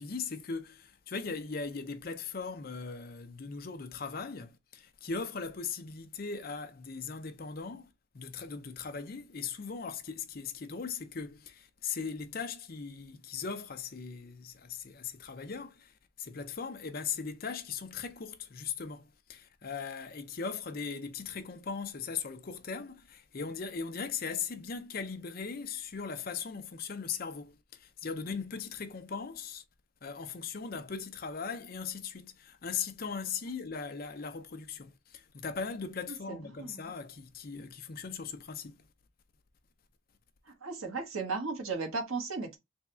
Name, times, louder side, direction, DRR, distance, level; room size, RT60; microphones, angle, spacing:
voice 1, 0.0-29.6 30.0-38.8, left 5 dB, 45° left, 0.5 m, -39 dB
voice 2, 36.3-36.8 40.6-42.6, right 4 dB, 80° right, 1.1 m, -35 dB
3.5 x 2.3 x 4.2 m
head